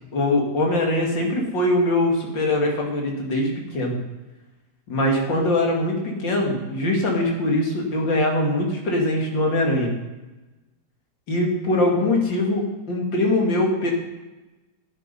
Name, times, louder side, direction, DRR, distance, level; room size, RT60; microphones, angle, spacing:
voice 1, 0.1-4.0 4.9-9.9 11.3-13.9, left 1 dB, 90° left, 0 dB, 3.0 m, -22 dB
11.5 x 9.3 x 5.4 m, 1.1 s
omnidirectional pair, 2.0 m